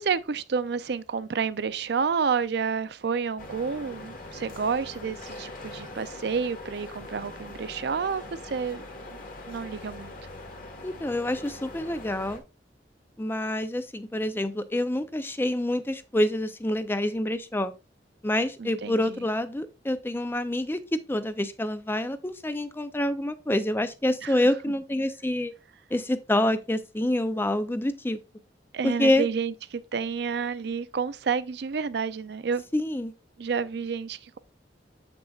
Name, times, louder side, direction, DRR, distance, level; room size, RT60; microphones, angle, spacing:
voice 1, 0.0-8.8 9.1-9.2 9.5-10.1 18.6-19.2 24.2-24.4 28.7-32.6 33.4-34.4, right 6 dB, 65° right, 0.5 m, -30 dB
sound 1, 3.4-12.4, left 2 dB, 50° left, 1.5 m, -42 dB
voice 2, 10.8-12.4 13.2-17.7 18.2-25.5 25.9-28.2 28.8-29.2 32.7-33.1, left 1 dB, 15° left, 0.5 m, -27 dB
7.7 x 6.0 x 2.4 m
head